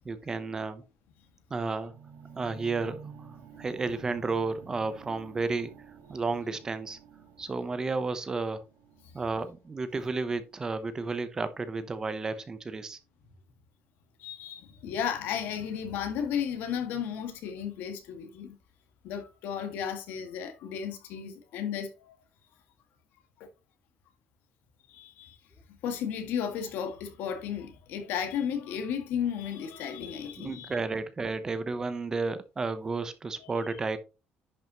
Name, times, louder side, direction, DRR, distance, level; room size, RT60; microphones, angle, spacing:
voice 1, 0.0-0.8 1.5-1.9 2.4-3.1 3.6-5.7 6.1-7.0 7.4-8.6 9.1-13.0 30.4-34.0, right 3 dB, 20° right, 0.7 m, -32 dB
sound 1, 1.9-11.9, right 7 dB, 65° right, 1.6 m, -51 dB
voice 2, 14.2-18.6 19.0-22.2 23.4-23.5 24.9-25.4 25.8-30.8 33.4-33.8, left 8 dB, 70° left, 1.8 m, -34 dB
10.5 x 5.6 x 2.9 m
cardioid pair, 175°, 3 cm